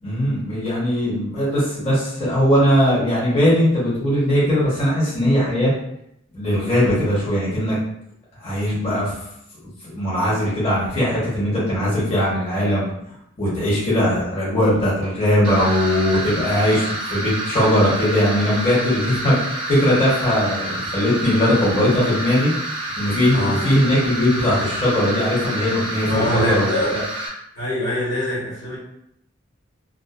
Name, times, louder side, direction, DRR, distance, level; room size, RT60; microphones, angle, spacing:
voice 1, 0.0-5.7 6.3-7.7 8.4-9.1 9.9-12.8 13.4-19.4 19.7-22.5 23.0-27.0, equal, 30° left, -8 dB, 0.9 m, -19 dB
sound 1, 15.4-27.3, right 1 dB, 25° right, 0.5 m, -28 dB
voice 2, 23.3-23.7 26.1-26.9 27.5-28.8, left 1 dB, 80° left, -6 dB, 1.1 m, -23 dB
2.4 x 2.2 x 2.3 m, 0.76 s
head